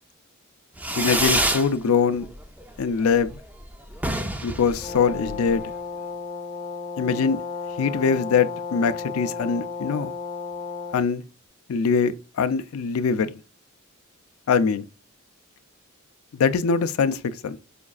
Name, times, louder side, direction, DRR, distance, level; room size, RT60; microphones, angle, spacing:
Fireworks, 0.8-1.7 2.1-2.6 2.9-3.0 3.2-3.3 3.6-3.7 3.9-5.6, right 1 dB, 5° right, 0.4 m, -26 dB
voice 1, 1.0-2.3 2.8-3.4 4.4-5.6 7.0-7.4 7.8-10.1 10.9-11.2 11.7-13.3 14.5-14.8 16.3-17.6, left 5 dB, 75° left, 0.4 m, -23 dB
Brass instrument, 4.8-11.0, left 5 dB, 30° left, 0.6 m, -33 dB
5.1 x 2.4 x 2.3 m
head